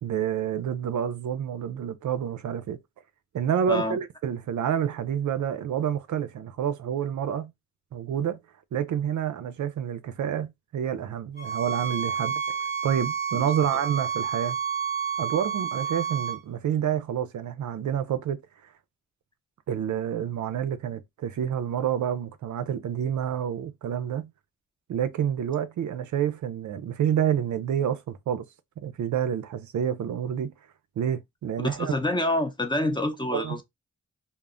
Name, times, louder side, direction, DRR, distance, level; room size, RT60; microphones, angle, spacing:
voice 1, 0.0-2.8 3.3-7.5 7.9-8.4 8.7-14.6 15.2-18.4 19.7-24.3 24.9-28.5 28.8-30.5 31.0-32.0 33.3-33.6, right 9 dB, 70° right, 0.4 m, -28 dB
voice 2, 3.7-4.0 13.4-13.5 31.6-33.6, left 1 dB, 15° left, 0.6 m, -27 dB
sound 1, 11.4-16.4, right 7 dB, 35° right, 0.8 m, -30 dB
2.1 x 2.0 x 3.6 m
cardioid pair, 60°, 31 cm